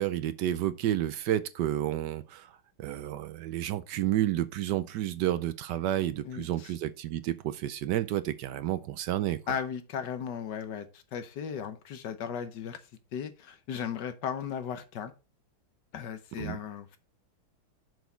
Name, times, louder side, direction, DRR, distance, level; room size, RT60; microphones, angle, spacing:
voice 1, 0.0-2.5 2.8-9.4 16.4-16.6, right 12 dB, 70° right, 1.1 m, -30 dB
voice 2, 6.2-6.7 9.5-12.8 13.1-15.1 15.9-17.0, left 8 dB, 65° left, 1.4 m, -36 dB
7.0 x 6.2 x 4.5 m
omnidirectional pair, 2.2 m